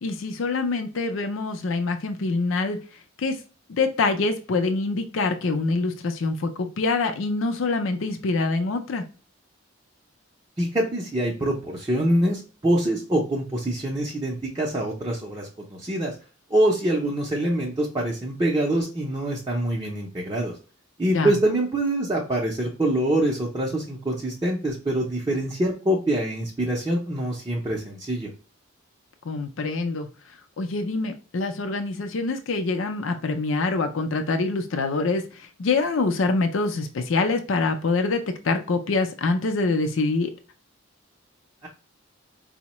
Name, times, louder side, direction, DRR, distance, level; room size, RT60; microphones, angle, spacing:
voice 1, 0.0-2.8 3.2-3.4 3.7-9.0 21.1-21.4 29.2-30.1 30.6-40.3, left 3 dB, 70° left, 6 dB, 0.5 m, -25 dB
voice 2, 10.6-16.1 16.5-20.5 21.0-28.3, right 1 dB, 20° right, -3 dB, 0.5 m, -25 dB
4.5 x 2.1 x 2.9 m, 0.36 s
head